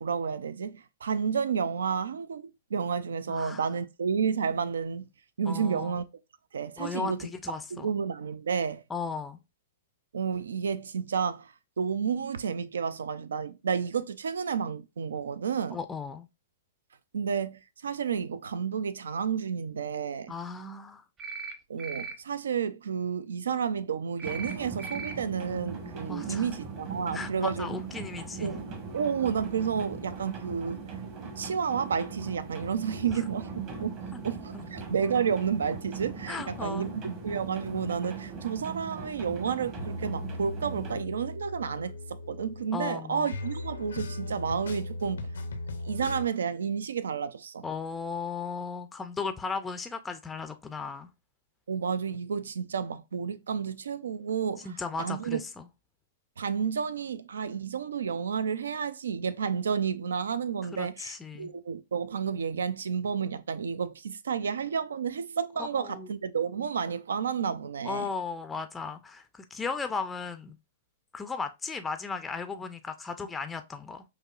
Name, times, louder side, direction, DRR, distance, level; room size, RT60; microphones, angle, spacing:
voice 1, 0.0-5.1 5.4-6.0 6.5-7.2 7.7-8.8 10.1-15.8 17.1-20.3 21.7-27.7 28.4-28.6 28.9-30.8 31.4-45.3 45.9-47.6 51.7-54.7 55.0-55.4 56.4-68.1, right 6 dB, 80° right, 0.3 m, -31 dB
voice 2, 3.3-3.7 5.4-5.9 6.8-7.9 8.9-9.4 15.7-16.3 20.3-21.0 26.1-26.5 27.1-28.5 33.1-33.2 34.1-34.2 34.5-34.7 36.3-36.9 42.7-43.3 47.6-51.1 54.6-55.7 60.6-61.5 65.6-66.1 67.8-70.6 71.1-74.0, left 5 dB, 15° left, 0.4 m, -36 dB
sound 1, 21.2-21.5 21.8-22.1 24.2-24.5 24.8-25.1, right 5 dB, 25° right, 0.8 m, -38 dB
sound 2, 24.2-41.0, right 5 dB, 40° right, 1.3 m, -39 dB
sound 3, 39.8-46.3, left 2 dB, 80° left, 0.5 m, -38 dB
5.2 x 2.0 x 2.4 m
hypercardioid pair, 115°, 0 cm